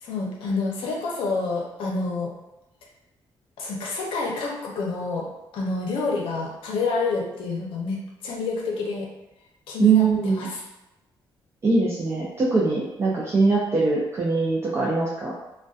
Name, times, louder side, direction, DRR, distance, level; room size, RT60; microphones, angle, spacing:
voice 1, 0.0-2.3 3.6-5.3 5.5-9.1 9.7-10.6, left 4 dB, 90° left, -2 dB, 0.6 m, -28 dB
voice 2, 9.8-10.5 11.6-15.3, right 3 dB, 30° right, -5 dB, 0.4 m, -22 dB
2.6 x 2.1 x 2.3 m, 0.96 s
cardioid pair, 135°, 9 cm